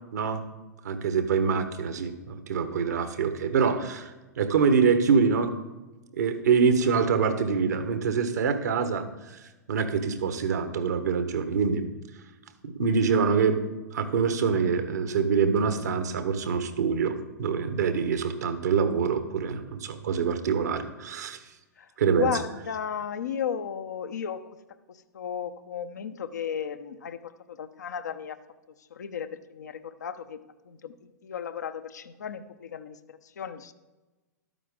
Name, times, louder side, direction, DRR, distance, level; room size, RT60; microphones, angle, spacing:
voice 1, 0.1-0.4 0.8-4.1 4.4-5.5 6.1-9.4 9.7-11.9 12.6-13.6 13.9-21.4 22.0-22.3, right 6 dB, 65° right, 9 dB, 1.2 m, -25 dB
voice 2, 22.1-24.4 24.9-28.4 28.9-30.4 30.6-33.7, left 8 dB, 70° left, 9 dB, 0.8 m, -34 dB
12.5 x 9.2 x 3.7 m, 1.1 s
figure-of-eight pair, 105°, 10 cm